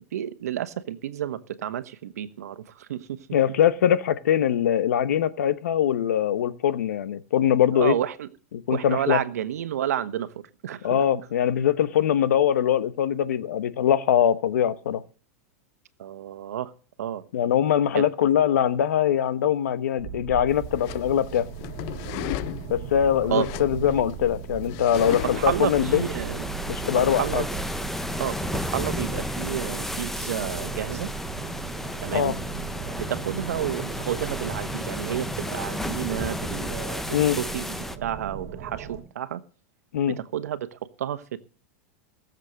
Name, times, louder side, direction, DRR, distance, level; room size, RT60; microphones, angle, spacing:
voice 1, 0.1-3.2 7.7-8.3 8.7-11.0 16.0-16.7 17.0-17.2 17.9-18.0 23.3-23.5 25.3-26.5 27.1-27.4 28.2-31.1 32.0-32.4 33.0-37.8 38.0-39.4 40.1-41.4, right 10 dB, 85° right, 11 dB, 1.2 m, -30 dB
voice 2, 3.3-7.9 8.7-9.2 10.8-15.0 17.3-21.5 22.7-26.0 26.7-27.4 32.1-32.3 37.1-37.4 39.9-40.2, left 9 dB, 85° left, 14 dB, 1.1 m, -22 dB
sound 1, 20.0-39.0, right 7 dB, 45° right, 2.5 m, -38 dB
sound 2, 20.5-25.6, left 17 dB, 45° left, 0.6 m, -36 dB
sound 3, 24.9-38.0, left 1 dB, 5° left, 0.7 m, -33 dB
18.0 x 7.5 x 6.4 m, 0.39 s
supercardioid pair, 140°, 8 cm